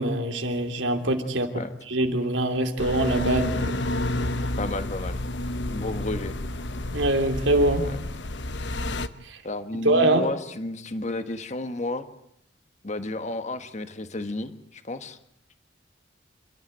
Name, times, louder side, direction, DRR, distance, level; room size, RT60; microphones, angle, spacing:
voice 1, 0.0-1.5 1.9-3.8 6.9-7.9 9.2-9.4 9.8-10.2, right 1 dB, 85° right, 4 dB, 3.0 m, -23 dB
sound 1, 2.8-9.1, left 1 dB, 70° left, 1.1 m, -29 dB
voice 2, 4.6-5.2 5.7-6.3 9.4-12.1 12.8-15.2, left 2 dB, 40° left, 9 dB, 1.5 m, -32 dB
28.0 x 13.0 x 9.2 m, 0.76 s
head